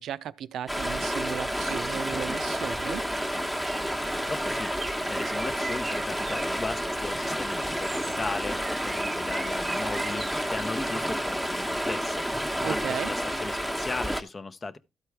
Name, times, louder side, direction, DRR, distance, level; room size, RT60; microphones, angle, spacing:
voice 1, 0.0-3.0 12.6-13.1, right 9 dB, 75° right, 0.5 m, -35 dB
Stream, 0.7-14.2, equal, 5° left, 1.1 m, -30 dB
Bird, 1.7-11.2, right 4 dB, 30° right, 1.0 m, -42 dB
voice 2, 4.1-14.8, left 3 dB, 30° left, 0.8 m, -37 dB
13.0 x 4.5 x 4.7 m
cardioid pair, 90°, 0 cm